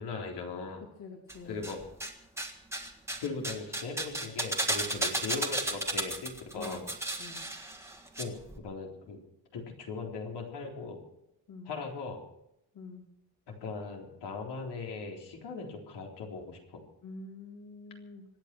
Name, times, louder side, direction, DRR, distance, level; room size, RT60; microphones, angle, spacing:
voice 1, 0.0-0.8 1.4-1.8 3.2-6.8 8.2-9.2 9.5-11.0 11.7-12.2 13.5-16.8, left 4 dB, 80° left, 0 dB, 4.0 m, -39 dB
voice 2, 0.8-1.7 5.0-5.2 6.5-6.9 7.2-7.5 11.5-11.7 12.7-13.1 17.0-18.2, left 3 dB, 60° left, 0 dB, 2.9 m, -46 dB
sound 1, 1.3-2.1 2.4-8.2 8.5-8.6, right 1 dB, 5° right, 1.7 m, -34 dB
25.5 x 9.1 x 6.1 m, 0.81 s
wide cardioid pair, 160°, 40 cm